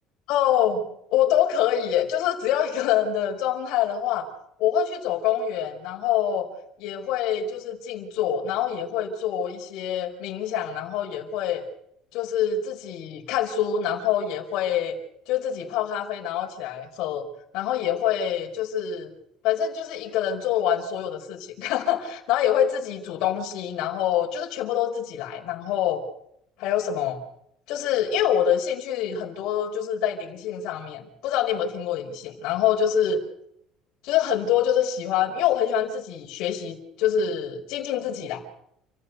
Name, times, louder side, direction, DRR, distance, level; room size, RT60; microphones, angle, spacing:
voice 1, 0.3-0.8 1.1-4.2 4.6-6.5 6.8-11.6 12.1-14.9 15.3-17.2 17.5-19.1 19.4-26.0 26.6-27.2 27.7-33.2 34.0-38.6, left 9 dB, 70° left, 1 dB, 4.8 m, -25 dB
29.0 x 15.5 x 6.7 m, 0.73 s
cardioid pair, 150°, 0 cm